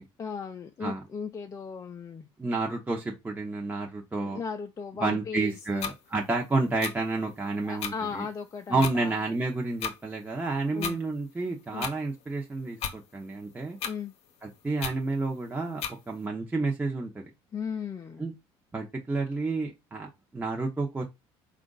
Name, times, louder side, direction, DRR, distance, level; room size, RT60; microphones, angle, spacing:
voice 1, 0.2-2.3 4.1-5.9 7.6-9.2 10.7-11.0 11.7-11.9 13.8-14.1 17.5-18.2, left 6 dB, 30° left, 0.5 m, -36 dB
voice 2, 2.4-4.4 5.0-8.2 8.7-13.8 14.4-17.3 18.2-18.3 18.7-21.0, right 3 dB, 15° right, 0.9 m, -30 dB
sound 1, 5.8-5.9 6.8-6.9 7.8-7.9 8.8-8.9 9.8-9.9 10.8-10.9 11.8-11.9 12.8-13.0 13.8-13.9 14.8-15.0 15.8-15.9, left 7 dB, 65° left, 0.7 m, -32 dB
4.3 x 2.5 x 3.9 m
supercardioid pair, 95°, 11 cm